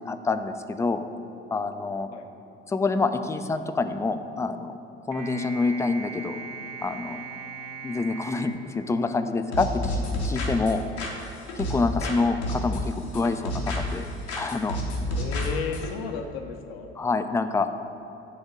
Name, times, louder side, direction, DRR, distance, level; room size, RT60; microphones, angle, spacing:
voice 1, 0.1-1.0 1.5-2.1 2.7-4.8 5.1-6.4 6.8-7.2 7.8-10.8 11.6-14.0 14.4-14.8 17.0-17.8, left 3 dB, 10° left, 9 dB, 0.4 m, -27 dB
sound 1, 5.1-9.6, right 4 dB, 70° right, 0.7 m, -40 dB
sound 2, 9.5-12.2 12.4-14.0 14.3-15.9, left 1 dB, 85° left, 1.2 m, -29 dB
voice 2, 15.2-16.9, left 5 dB, 65° left, 5 dB, 0.8 m, -34 dB
10.5 x 3.5 x 5.3 m, 2.9 s
figure-of-eight pair, 55°, 33 cm